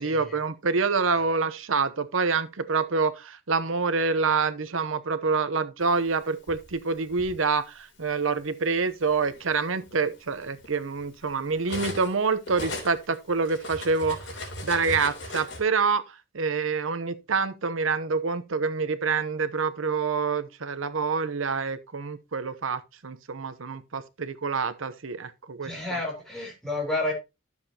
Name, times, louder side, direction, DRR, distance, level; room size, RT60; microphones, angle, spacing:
voice 1, 0.0-14.2 14.6-26.0, right 4 dB, 90° right, 0.8 m, -27 dB
Cutlery silverware, 6.1-7.4 8.3-8.5 8.9-12.2 12.4-15.6, left 1 dB, 65° left, 3.3 m, -38 dB
voice 2, 25.6-27.1, left 2 dB, ahead, 3.6 m, -30 dB
12.0 x 7.3 x 2.9 m
head